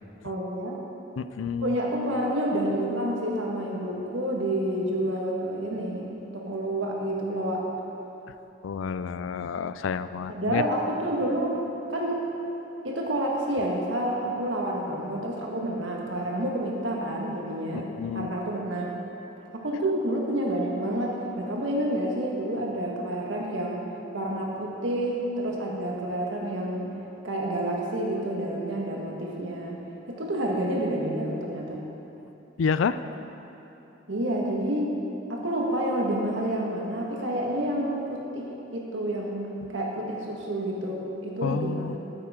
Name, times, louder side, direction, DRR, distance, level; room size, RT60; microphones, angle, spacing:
voice 1, 0.2-0.8 1.6-6.1 6.3-7.6 10.3-11.6 11.9-12.2 12.8-17.9 18.1-19.0 19.5-23.8 24.1-26.9 27.2-29.8 30.1-31.8 34.1-34.9 35.3-42.0, right 1 dB, 80° right, -2 dB, 1.6 m, -29 dB
voice 2, 1.2-1.7 8.6-10.7 17.7-18.3 32.6-33.0 41.4-42.0, left 6 dB, 85° left, 13 dB, 0.4 m, -29 dB
13.0 x 9.0 x 3.7 m, 3.0 s
head